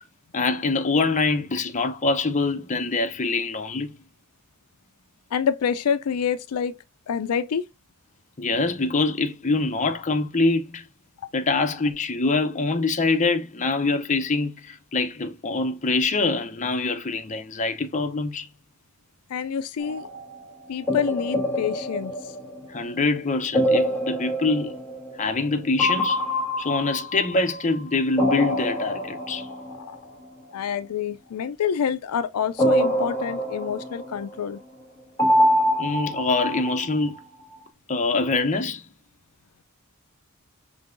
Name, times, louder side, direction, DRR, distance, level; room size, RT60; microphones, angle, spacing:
voice 1, 0.3-3.9 8.4-10.8 11.3-18.5 22.7-24.7 25.2-26.2 26.6-29.5 35.8-37.2 37.9-38.8, left 3 dB, 35° left, 0.7 m, -24 dB
voice 2, 5.3-6.8 7.1-7.6 19.3-20.1 20.7-22.1 29.7-29.8 30.5-34.6, left 7 dB, 80° left, 0.4 m, -27 dB
sound 1, 19.8-20.3 20.9-22.9 23.5-25.5 25.8-27.8 28.2-29.9 32.6-34.4 35.2-37.2, equal, 10° left, 1.9 m, -25 dB
5.3 x 3.3 x 2.5 m
head